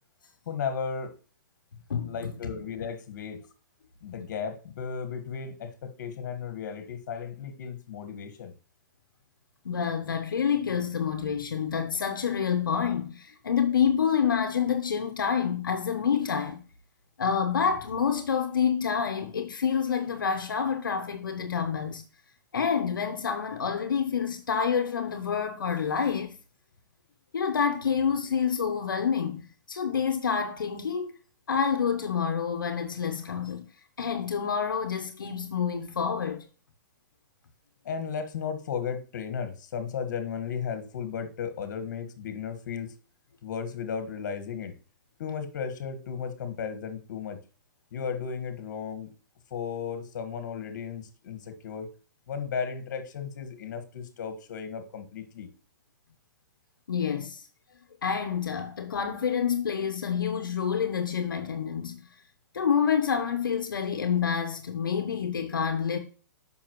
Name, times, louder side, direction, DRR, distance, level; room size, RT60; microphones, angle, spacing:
voice 1, 0.4-1.1 2.0-3.4 4.0-8.5 37.8-42.9 43.4-44.7 45.2-47.4 47.9-49.1 49.5-51.9 52.3-55.5, left 6 dB, 60° left, 1.6 m, -35 dB
voice 2, 9.6-16.6 17.2-22.0 22.5-26.3 27.3-31.1 31.5-33.7 34.0-36.4 56.9-57.4 58.0-62.0 62.5-66.0, left 7 dB, 90° left, 0.9 m, -28 dB
7.2 x 5.7 x 3.0 m
hypercardioid pair, 140°, 11 cm